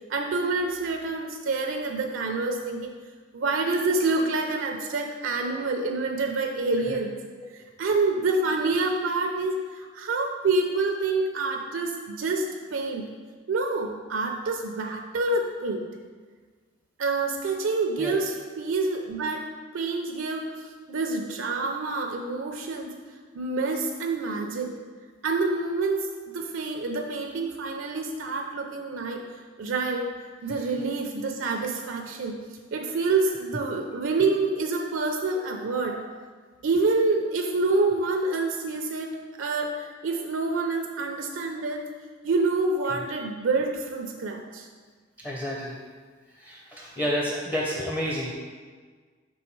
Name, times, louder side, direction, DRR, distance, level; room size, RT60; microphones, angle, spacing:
voice 1, 0.1-2.9 3.3-7.2 7.8-13.1 13.5-15.9 17.0-23.0 23.3-24.7 25.2-26.1 26.3-29.2 29.6-30.1 30.4-32.3 32.7-36.0 36.6-41.8 42.2-44.7, right 3 dB, 70° right, 3 dB, 0.4 m, -27 dB
voice 2, 45.2-45.8 46.4-48.3, equal, 15° left, -4 dB, 0.6 m, -30 dB
6.2 x 3.3 x 4.5 m, 1.5 s
head